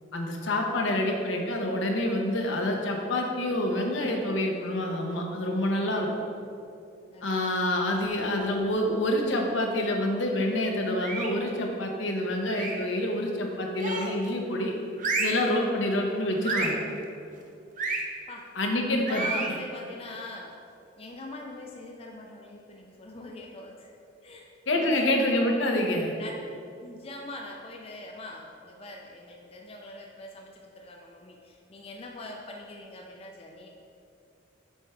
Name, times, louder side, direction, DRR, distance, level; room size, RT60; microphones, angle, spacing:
voice 1, 0.1-6.1 7.2-14.7 15.2-16.8 18.6-19.2 24.7-26.1, left 1 dB, 75° left, 2 dB, 0.8 m, -27 dB
voice 2, 7.1-8.0 18.3-18.5 18.8-20.5 21.0-23.9 24.2-25.1 26.2-26.4 26.8-33.7, left 2 dB, 30° left, 0 dB, 0.5 m, -43 dB
sound 1, 11.0-11.4 12.5-12.9 13.8-14.3 15.0-15.5 16.4-16.8 17.8-18.0 19.1-19.5, right 3 dB, 45° right, 0.6 m, -30 dB
7.1 x 4.5 x 3.6 m, 2.5 s
head